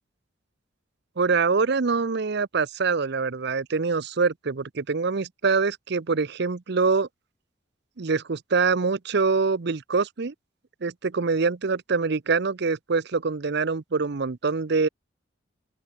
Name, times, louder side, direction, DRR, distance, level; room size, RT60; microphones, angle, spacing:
voice 1, 1.2-7.1 8.0-10.3 10.8-14.9, right 4 dB, 60° right, 0.7 m, -24 dB
open air
head